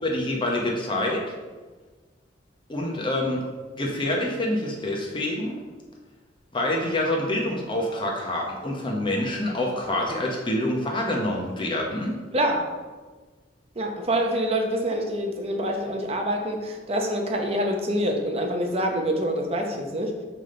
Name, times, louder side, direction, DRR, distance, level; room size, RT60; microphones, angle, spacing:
voice 1, 0.0-1.2 2.7-3.4 3.8-5.6 6.5-12.2, left 1 dB, 30° left, -1 dB, 0.9 m, -26 dB
voice 2, 12.3-12.7 13.8-20.2, right 1 dB, 35° right, 3 dB, 0.8 m, -26 dB
7.1 x 3.6 x 3.8 m, 1.3 s
head